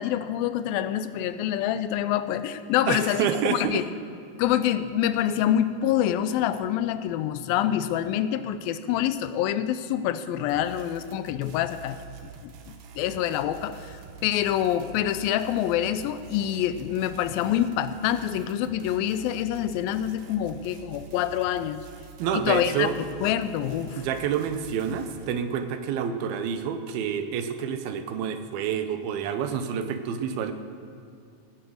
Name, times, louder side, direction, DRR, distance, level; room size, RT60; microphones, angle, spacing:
voice 1, 0.0-3.8 4.4-12.0 12.4-21.8 22.3-22.9 23.2-24.1, left 11 dB, 85° left, 12 dB, 2.3 m, -26 dB
voice 2, 2.9-3.8 22.2-22.9 24.0-30.5, right 8 dB, 90° right, 9 dB, 2.8 m, -28 dB
sound 1, 10.5-25.3, right 7 dB, 75° right, 2.6 m, -46 dB
18.0 x 7.9 x 6.5 m, 2.5 s
omnidirectional pair, 4.2 m